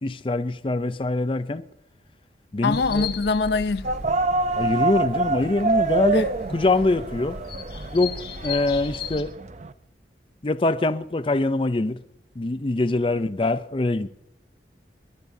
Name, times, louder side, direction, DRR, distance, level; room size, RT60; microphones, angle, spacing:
voice 1, 0.0-1.6 2.5-3.1 4.6-7.4 7.9-8.1 8.4-9.3 10.4-12.0 12.4-14.1, left 2 dB, 30° left, 0.5 m, -24 dB
voice 2, 2.6-3.9 6.1-6.3, left 4 dB, 75° left, 0.6 m, -24 dB
sound 1, 2.7-9.2, left 5 dB, 60° left, 1.9 m, -37 dB
sound 2, 3.8-9.7, right 3 dB, 40° right, 0.6 m, -26 dB
22.5 x 22.5 x 2.7 m
head